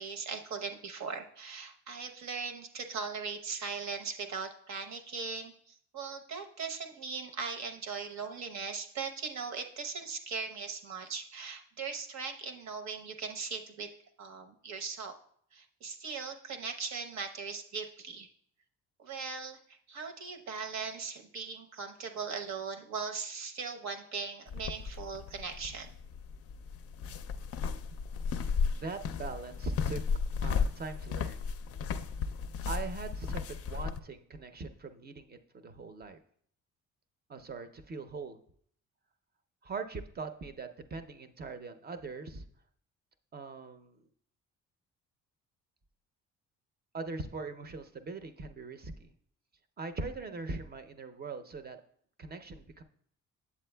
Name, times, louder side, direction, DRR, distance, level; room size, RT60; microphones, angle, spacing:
voice 1, 0.0-13.9 14.2-15.1 15.5-18.3 19.0-25.9, right 5 dB, 65° right, 5 dB, 0.9 m, -39 dB
sound 1, 24.5-34.0, left 5 dB, 50° left, 0.4 m, -34 dB
voice 2, 28.7-30.0 30.4-31.4 32.7-36.2 37.3-38.4 39.6-42.4 43.3-44.0 46.9-49.1 49.8-51.8 52.2-52.8, right 3 dB, 30° right, 8 dB, 0.6 m, -41 dB
8.3 x 7.4 x 2.2 m, 0.62 s
cardioid pair, 90°, 30 cm